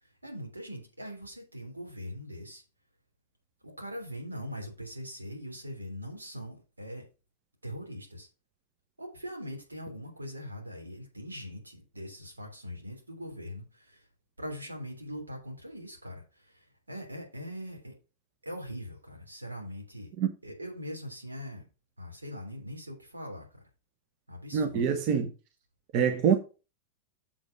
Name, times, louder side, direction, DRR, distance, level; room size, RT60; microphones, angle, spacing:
voice 1, 0.0-2.6 3.6-7.1 7.6-8.3 9.0-14.1 14.4-17.9 18.4-20.1 20.4-21.6 22.0-23.5 24.3-25.0, equal, 80° right, 3.1 m, -41 dB
voice 2, 24.5-25.3 25.9-26.4, right 7 dB, 40° right, 1.1 m, -25 dB
7.3 x 5.2 x 5.0 m
figure-of-eight pair, 90°, 0 cm